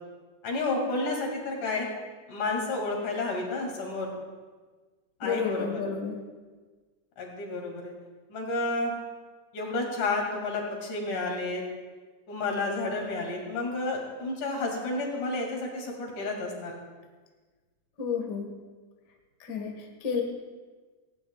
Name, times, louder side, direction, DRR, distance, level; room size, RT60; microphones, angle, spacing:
voice 1, 0.4-1.9 2.3-4.1 5.2-5.8 7.2-7.9 8.3-8.9 9.5-11.6 12.3-16.7, left 2 dB, 75° left, 0 dB, 3.9 m, -31 dB
voice 2, 5.2-6.2 18.0-18.5 19.4-20.2, left 6 dB, 40° left, 1 dB, 1.8 m, -31 dB
18.0 x 17.0 x 2.4 m, 1.4 s
omnidirectional pair, 3.6 m